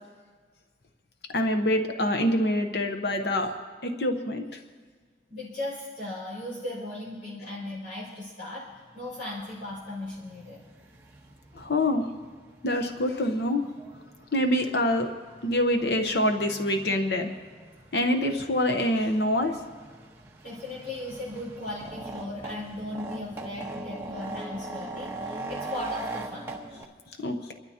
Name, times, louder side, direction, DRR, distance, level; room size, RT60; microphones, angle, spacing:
voice 1, 1.3-3.5 3.8-4.4 11.5-12.0 12.6-13.6 14.3-15.1 15.4-17.3 17.9-19.6 27.2-27.5, left 1 dB, 65° left, 5 dB, 0.9 m, -25 dB
voice 2, 5.3-8.6 8.9-10.6 20.4-26.5, left 1 dB, 45° left, -8 dB, 5.5 m, -37 dB
sound 1, 8.8-8.9 9.2-26.8, right 2 dB, 15° right, 1.2 m, -41 dB
28.0 x 13.0 x 2.9 m, 1.5 s
head